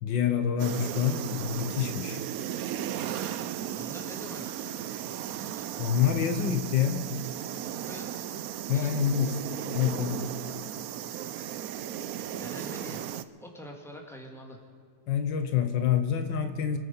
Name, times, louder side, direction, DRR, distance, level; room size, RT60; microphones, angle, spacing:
voice 1, 0.0-2.2 5.8-7.0 8.7-9.4 9.7-10.2 15.1-16.8, left 8 dB, 75° left, 8 dB, 1.6 m, -27 dB
sound 1, 0.6-13.2, right 10 dB, 70° right, 0.9 m, -36 dB
voice 2, 3.7-4.7 5.3-5.7 7.9-8.2 8.7-9.4 10.1-10.4 12.4-13.1 13.4-14.6, equal, ahead, 1 dB, 2.3 m, -45 dB
25.0 x 9.1 x 5.6 m, 2.1 s
omnidirectional pair, 2.0 m